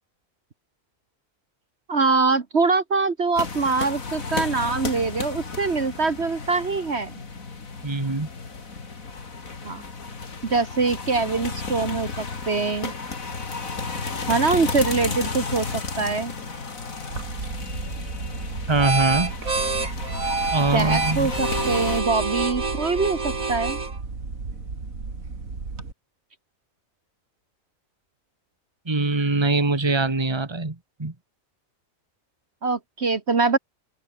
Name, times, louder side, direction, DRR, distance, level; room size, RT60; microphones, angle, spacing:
voice 1, 1.9-7.1 9.6-9.8 10.5-12.9 14.3-16.3 20.7-23.8 32.6-33.6, right 4 dB, 50° right, 1.8 m, -23 dB
sound 1, 3.4-22.0, left 4 dB, 80° left, 3.1 m, -33 dB
voice 2, 7.8-8.3 18.7-19.3 20.5-21.3 28.9-31.1, right 3 dB, 20° right, 1.8 m, -23 dB
sound 2, 17.1-25.9, right 4 dB, 80° right, 3.4 m, -28 dB
omnidirectional pair, 1.4 m